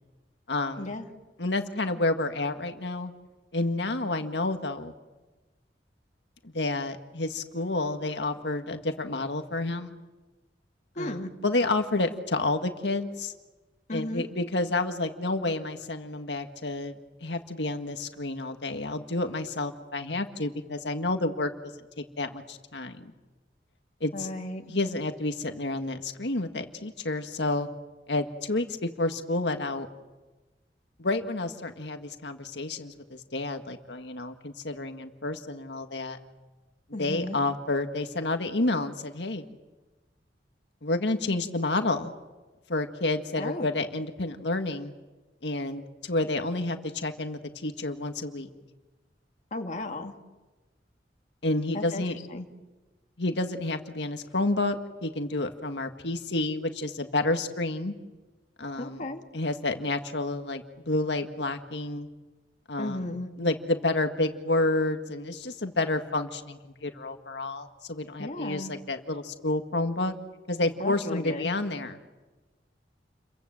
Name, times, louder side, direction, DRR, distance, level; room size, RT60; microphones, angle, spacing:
voice 1, 0.5-0.9 1.4-3.1 3.5-4.9 6.4-9.9 11.0-13.3 13.9-21.5 22.0-23.1 24.0-24.3 24.7-27.7 28.1-29.9 31.0-36.2 37.0-39.5 40.8-42.1 42.7-44.9 45.4-48.5 51.4-52.2 53.2-57.9 58.6-59.0 59.3-62.1 62.7-63.0 63.4-70.2 70.5-72.0, left 2 dB, 75° left, 6 dB, 1.8 m, -30 dB
voice 2, 11.0-11.3 13.9-14.3 24.1-24.7 36.9-37.4 43.4-43.7 49.5-50.1 51.7-52.0 52.3-52.5 58.8-59.2 62.8-63.3 68.2-68.7 70.8-71.6, left 1 dB, 45° left, 3 dB, 2.2 m, -34 dB
30.0 x 23.5 x 7.8 m, 1.2 s
head